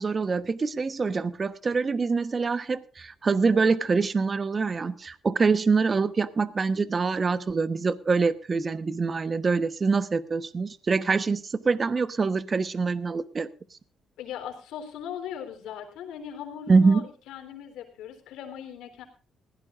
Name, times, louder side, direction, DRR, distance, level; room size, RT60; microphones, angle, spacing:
voice 1, 0.0-13.5 16.7-17.0, right 4 dB, 35° right, 13 dB, 1.2 m, -25 dB
voice 2, 14.2-19.0, left 9 dB, 90° left, 6 dB, 3.7 m, -39 dB
20.0 x 16.5 x 2.5 m, 0.36 s
cardioid pair, 90°, 0 cm